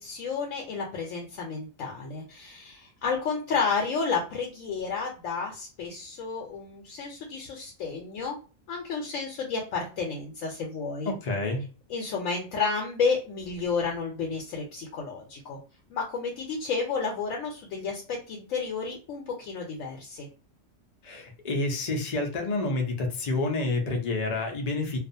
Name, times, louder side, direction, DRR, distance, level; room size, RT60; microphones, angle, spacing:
voice 1, 0.0-8.4 8.7-11.1 11.9-15.6 15.9-20.3, left 5 dB, 80° left, 0 dB, 1.0 m, -31 dB
voice 2, 11.1-11.6 21.0-25.0, left 2 dB, 50° left, 3 dB, 0.5 m, -29 dB
2.4 x 2.3 x 2.6 m, 0.36 s
omnidirectional pair, 1.4 m